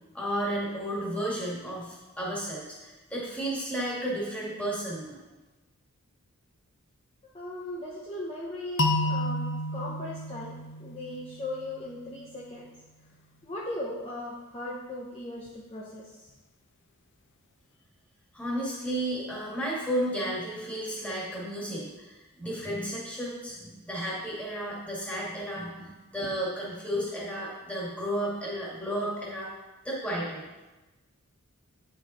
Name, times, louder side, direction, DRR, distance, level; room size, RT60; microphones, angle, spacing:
voice 1, 0.1-5.2 18.3-22.1 22.4-29.5 29.8-30.4, right 1 dB, 5° left, -6 dB, 2.2 m, -33 dB
voice 2, 7.3-9.4 9.7-10.5 10.8-12.6 13.4-16.3, left 1 dB, 25° left, -6 dB, 0.9 m, -38 dB
sound 1, 8.8-11.7, left 1 dB, 55° left, 0.8 m, -30 dB
9.6 x 5.5 x 4.3 m, 1.1 s
head